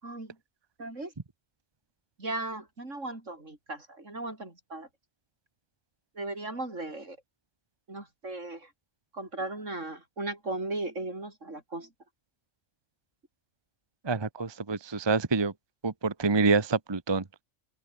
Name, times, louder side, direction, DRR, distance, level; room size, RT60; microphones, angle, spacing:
voice 1, 0.0-0.4 0.8-1.1 2.2-4.9 6.2-7.2 7.9-8.7 9.1-11.9, right 2 dB, 75° right, 5.6 m, -37 dB
voice 2, 14.0-15.5 15.8-17.4, right 4 dB, 20° right, 1.0 m, -27 dB
open air
omnidirectional pair, 1.3 m